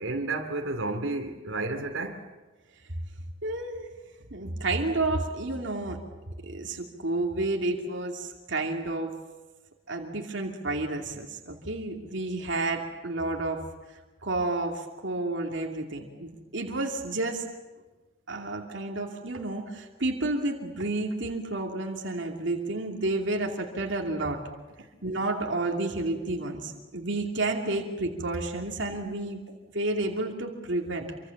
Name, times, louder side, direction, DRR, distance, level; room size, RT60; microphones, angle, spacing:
voice 1, 0.0-2.2, right 2 dB, 80° right, 4 dB, 2.8 m, -31 dB
voice 2, 3.4-3.9 4.3-6.0 6.4-9.2 9.9-13.6 14.2-17.5 18.3-24.4 25.0-29.5 29.7-31.1, right 2 dB, 65° right, 1 dB, 2.7 m, -30 dB
27.5 x 24.5 x 7.2 m, 1.2 s
head